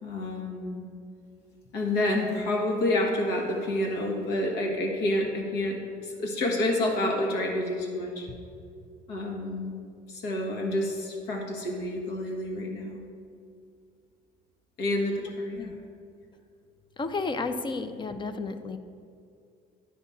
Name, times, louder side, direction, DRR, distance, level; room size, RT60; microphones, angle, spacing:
voice 1, 0.0-0.9 1.7-8.3 9.1-9.8 10.1-13.0 14.8-15.7, left 1 dB, 90° left, 1 dB, 1.5 m, -29 dB
voice 2, 17.0-18.8, left 3 dB, 30° left, 9 dB, 0.5 m, -32 dB
9.5 x 3.6 x 7.0 m, 2.3 s
cardioid pair, 110°, 17 cm